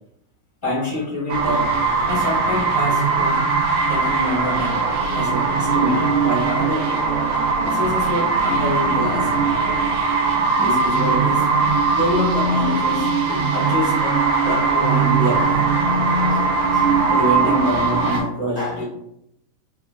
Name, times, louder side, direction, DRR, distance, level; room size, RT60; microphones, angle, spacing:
voice 1, 0.6-1.7 2.0-3.4 3.9-4.8 5.1-6.8 7.5-9.4 10.4-11.5 11.9-14.2 14.4-16.0 16.3-18.8, left 1 dB, 40° left, -10 dB, 0.6 m, -26 dB
sound 1, 1.3-18.2, right 4 dB, 80° right, 1.9 m, -20 dB
5.0 x 2.3 x 2.3 m, 0.79 s
omnidirectional pair, 3.5 m